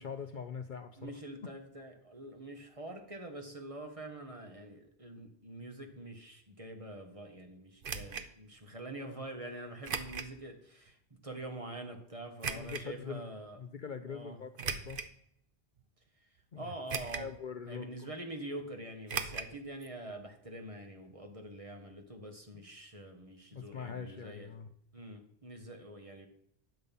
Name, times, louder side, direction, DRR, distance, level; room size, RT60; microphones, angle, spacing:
voice 1, 0.0-1.1 12.5-13.2 13.6-15.0 16.5-16.7 17.2-17.9 22.5-22.6 23.5-24.7, left 6 dB, 50° left, 8 dB, 0.8 m, -43 dB
voice 2, 1.0-11.0 11.2-13.6 14.1-14.4 16.2-16.3 16.5-17.3 17.7-24.5 24.9-26.3, right 1 dB, 30° right, 4 dB, 1.6 m, -45 dB
sound 1, 7.8-8.3 9.8-10.3 10.9-11.0 12.4-12.9 14.6-15.2 15.8-15.9 16.9-17.4 17.6-17.7 19.1-19.5 19.8-19.9 20.2-20.3, right 6 dB, 55° right, 1.0 m, -38 dB
10.5 x 6.7 x 5.5 m, 0.71 s
omnidirectional pair, 1.1 m